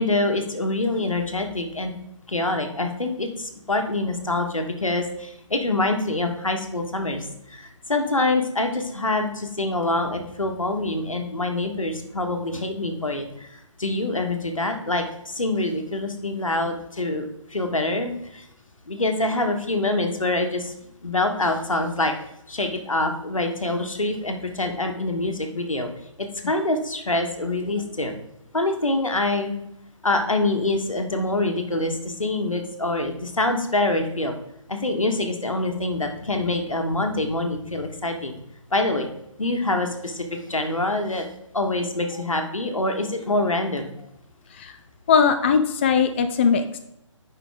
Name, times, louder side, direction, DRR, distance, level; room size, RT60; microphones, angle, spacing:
voice 1, 0.0-1.9 2.3-18.5 18.9-20.8 21.0-22.1 22.5-25.9 26.2-28.1 28.5-29.5 30.0-34.4 34.7-38.4 38.7-39.1 39.4-41.2 41.5-43.9, left 2 dB, 85° left, 5 dB, 1.4 m, -25 dB
voice 2, 45.1-46.8, left 6 dB, 20° left, 8 dB, 0.3 m, -20 dB
9.9 x 5.4 x 3.6 m, 0.82 s
figure-of-eight pair, 145°, 16 cm